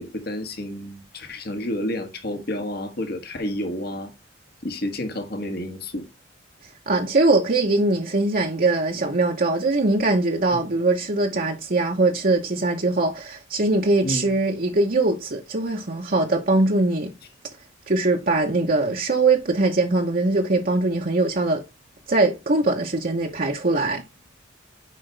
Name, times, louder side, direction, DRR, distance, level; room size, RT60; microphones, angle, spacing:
voice 1, 0.0-4.1 4.6-6.0 10.5-10.7 14.0-14.3, left 1 dB, 55° left, 1.6 m, -30 dB
voice 2, 6.9-17.1 17.9-21.6 22.1-24.0, right 2 dB, 50° right, 1.0 m, -21 dB
7.5 x 5.1 x 3.3 m
head